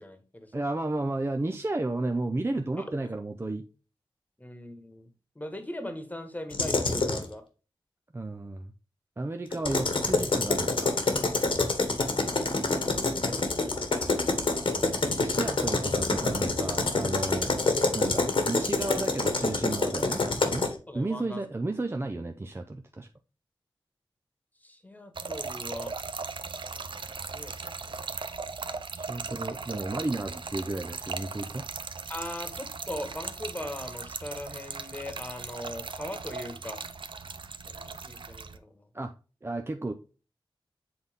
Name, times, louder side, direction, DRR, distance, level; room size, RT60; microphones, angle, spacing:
voice 1, 0.0-0.6 2.8-2.9 4.4-5.1 5.3-7.4 13.3-13.8 20.9-21.4 24.6-25.9 27.3-27.5 27.9-28.0 32.1-36.8 37.6-38.8, left 1 dB, 15° left, 8 dB, 1.4 m, -40 dB
voice 2, 0.5-3.6 8.1-8.7 9.2-11.0 15.2-17.5 17.9-20.7 20.9-23.1 28.9-31.7 38.9-39.1 39.4-39.9, right 2 dB, 25° right, 5 dB, 0.5 m, -32 dB
sound 1, 6.5-7.3 9.5-20.7, left 3 dB, 70° left, 1.4 m, -27 dB
Trickle dribble / Fill (with liquid), 25.2-38.6, right 4 dB, 65° right, 0.6 m, -38 dB
7.7 x 4.0 x 3.5 m, 0.34 s
wide cardioid pair, 80°, 9 cm